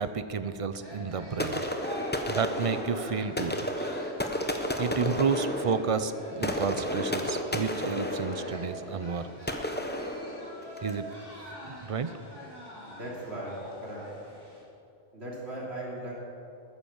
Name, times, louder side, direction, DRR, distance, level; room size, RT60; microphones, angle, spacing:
voice 1, 0.0-1.6 2.3-3.7 4.8-9.3 10.8-11.1 11.6-12.1, right 5 dB, 45° right, 11 dB, 0.5 m, -31 dB
sound 1, 0.8-14.6, equal, 20° right, 2.5 m, -45 dB
sound 2, 1.4-11.0, left 1 dB, 10° left, 0.8 m, -32 dB
voice 2, 12.9-13.6 13.8-14.0 15.1-16.1, right 1 dB, 70° right, -4 dB, 3.4 m, -38 dB
13.5 x 9.7 x 7.2 m, 2.8 s
omnidirectional pair, 1.1 m